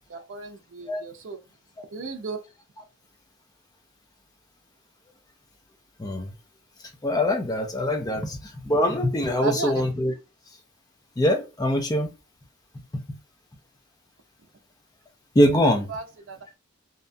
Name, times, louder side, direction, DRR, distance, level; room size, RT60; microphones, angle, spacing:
voice 1, 0.1-1.4 1.9-2.4 9.4-9.8 15.9-16.5, right 4 dB, 70° right, 0.5 m, -34 dB
voice 2, 6.0-6.3 7.0-10.1 11.2-12.1 12.7-13.2 15.3-15.9, left 1 dB, 20° left, 0.4 m, -23 dB
2.7 x 2.2 x 2.5 m
head